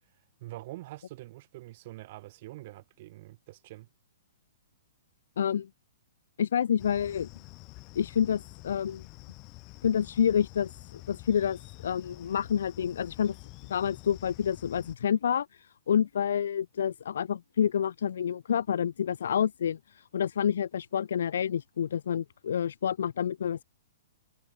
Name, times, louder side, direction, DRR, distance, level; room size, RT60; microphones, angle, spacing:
voice 1, 0.4-3.9, right 18 dB, 35° right, 5.6 m, -45 dB
voice 2, 5.4-5.7 6.4-7.3 7.9-9.1 9.8-13.4 13.7-23.6, left 8 dB, 70° left, 0.7 m, -28 dB
sound 1, 6.8-15.0, left 25 dB, 25° left, 2.7 m, -48 dB
hypercardioid pair, 170°, 0 cm